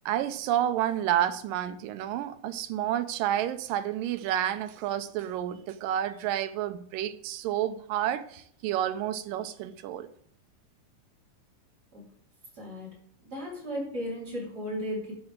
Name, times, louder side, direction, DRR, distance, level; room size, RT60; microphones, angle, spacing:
voice 1, 0.1-10.1, right 11 dB, 80° right, 2.3 m, -30 dB
voice 2, 12.5-12.9 13.2-15.1, equal, 25° right, 4.5 m, -35 dB
12.5 x 8.8 x 3.7 m
omnidirectional pair, 4.0 m